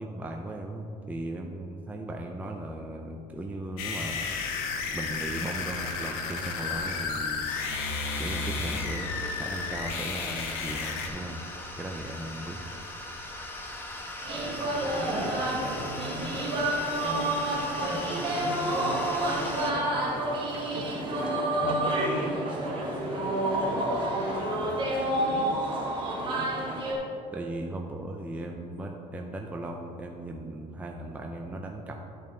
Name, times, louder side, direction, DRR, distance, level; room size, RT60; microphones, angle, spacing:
voice 1, 0.0-4.3 4.9-7.5 8.2-9.1 9.4-11.4 11.8-12.7 21.6-21.8 24.6-24.9 27.3-32.0, right 1 dB, 10° right, 2 dB, 0.5 m, -37 dB
sound 1, 3.8-11.1, left 4 dB, 85° left, 1.1 m, -32 dB
sound 2, 7.5-19.7, left 1 dB, 15° left, 1.0 m, -40 dB
voice 2, 14.2-16.6 17.0-20.9 21.6-24.5 25.0-26.5, right 1 dB, 55° right, 0 dB, 1.6 m, -40 dB
sound 3, 14.3-26.9, right 1 dB, 35° right, 1.6 m, -29 dB
12.5 x 5.4 x 3.8 m, 2.7 s
cardioid pair, 135°, 15 cm